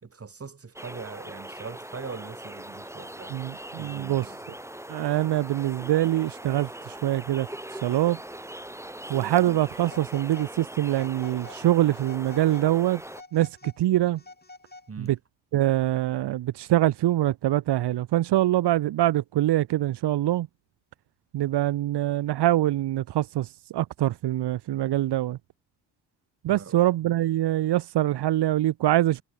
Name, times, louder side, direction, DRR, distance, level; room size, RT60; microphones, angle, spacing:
voice 1, 0.0-3.4 3.8-4.4 14.9-15.2 26.5-26.8, right 5 dB, 35° right, 2.6 m, -41 dB
sound 1, 0.8-13.2, right 1 dB, 5° right, 4.0 m, -41 dB
voice 2, 3.3-4.6 4.9-8.2 9.1-13.0 13.3-14.2 15.0-15.2 15.5-20.5 21.3-25.4 26.4-29.2, right 14 dB, 75° right, 1.4 m, -24 dB
Telephone, 9.8-10.5 10.9-11.6 12.0-12.7 13.1-15.1, left 3 dB, 25° left, 4.7 m, -49 dB
supercardioid pair, 55°, 40 cm